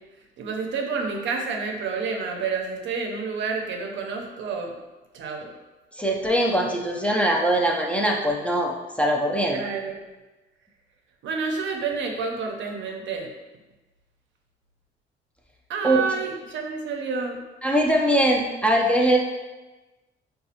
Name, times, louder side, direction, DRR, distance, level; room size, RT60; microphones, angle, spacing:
voice 1, 0.4-4.8 5.1-5.5 9.5-10.0 11.2-13.3 15.7-17.4, right 4 dB, 70° right, 2 dB, 0.6 m, -29 dB
voice 2, 5.9-9.6 15.8-16.0 17.6-19.2, right 1 dB, 5° left, -1 dB, 0.5 m, -22 dB
4.0 x 2.3 x 2.8 m, 1.1 s
cardioid pair, 90°, 20 cm